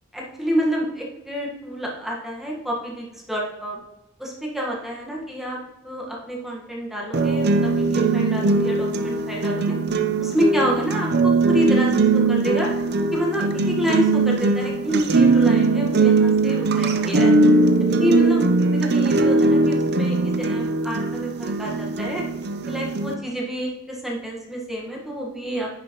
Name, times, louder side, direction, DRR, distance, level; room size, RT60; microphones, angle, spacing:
voice 1, 0.1-3.8 4.2-5.6 5.8-9.8 10.2-12.7 13.1-17.4 18.0-22.2 22.7-25.7, equal, ahead, -3 dB, 1.4 m, -28 dB
sound 1, 7.1-23.1, right 3 dB, 50° right, 0.6 m, -20 dB
10.0 x 5.9 x 3.0 m, 0.93 s
head